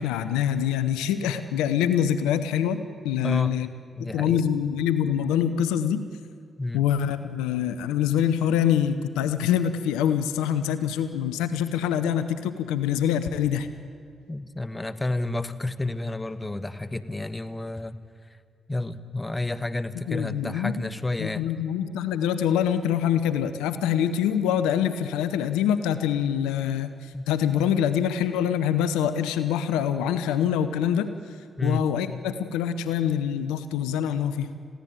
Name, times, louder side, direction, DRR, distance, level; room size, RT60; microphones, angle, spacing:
voice 1, 0.0-3.7 4.0-6.0 6.7-13.7 20.1-20.9 21.2-31.1 31.6-34.5, left 9 dB, 85° left, 11 dB, 0.8 m, -25 dB
voice 2, 3.2-3.6 3.9-4.4 6.6-6.8 14.3-18.0 18.7-21.7 27.1-27.3 31.6-31.9, left 2 dB, 20° left, 12 dB, 1.3 m, -30 dB
21.5 x 16.0 x 9.0 m, 2.3 s
hypercardioid pair, 40°, 0 cm